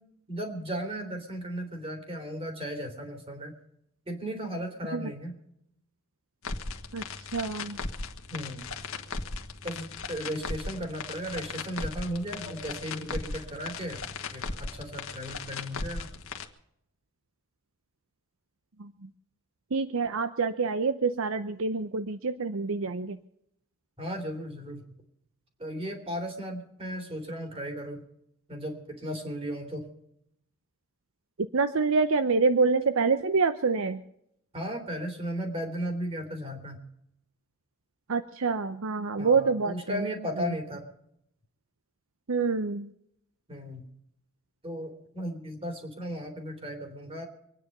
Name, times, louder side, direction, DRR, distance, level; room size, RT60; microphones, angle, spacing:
voice 1, 0.3-3.6 4.1-5.4 8.3-8.7 9.6-14.0 14.3-16.1 24.0-24.8 25.6-28.0 28.5-29.9 34.5-36.8 39.2-40.8 43.5-43.8 44.6-47.2, equal, 25° right, 4 dB, 3.5 m, -35 dB
sound 1, 6.4-16.5, left 3 dB, 65° left, 1.6 m, -37 dB
voice 2, 7.3-7.8 18.8-18.9 19.7-23.2 31.5-34.0 38.1-40.1 40.4-40.5 42.3-42.9, right 4 dB, 65° right, 11 dB, 0.7 m, -26 dB
25.0 x 9.8 x 5.4 m, 0.75 s
head